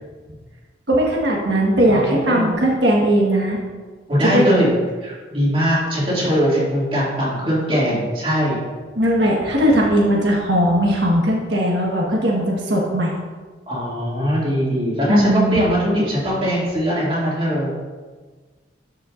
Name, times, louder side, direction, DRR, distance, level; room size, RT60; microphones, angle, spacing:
voice 1, 0.9-3.6 4.2-4.6 8.9-13.1 15.1-15.7, right 1 dB, 65° right, -2 dB, 1.4 m, -18 dB
voice 2, 1.8-2.5 4.1-4.7 5.0-8.6 13.7-17.7, equal, 30° right, -7 dB, 2.4 m, -20 dB
12.5 x 5.5 x 2.5 m, 1.4 s
head